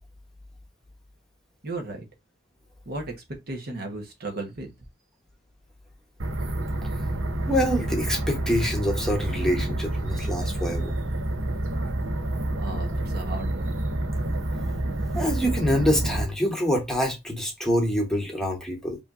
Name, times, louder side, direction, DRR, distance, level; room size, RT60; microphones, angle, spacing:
voice 1, 1.6-2.0 2.9-3.1 3.5-4.7 12.6-13.7, right 2 dB, 50° right, 1.1 m, -35 dB
sound 1, 6.2-16.3, right 1 dB, 70° right, 0.7 m, -28 dB
voice 2, 7.5-10.9 15.2-19.0, equal, 5° left, 1.0 m, -25 dB
5.1 x 2.8 x 2.5 m
head